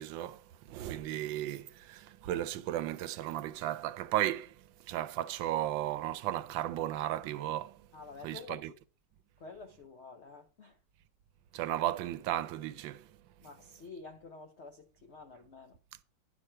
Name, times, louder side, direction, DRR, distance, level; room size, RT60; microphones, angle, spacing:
voice 1, 0.0-7.9 8.2-8.7 11.5-13.1, right 13 dB, 80° right, 1.3 m, -35 dB
voice 2, 7.9-8.8 9.4-10.8 13.4-15.8, left 4 dB, 75° left, 0.6 m, -49 dB
10.0 x 6.1 x 4.4 m
omnidirectional pair, 2.1 m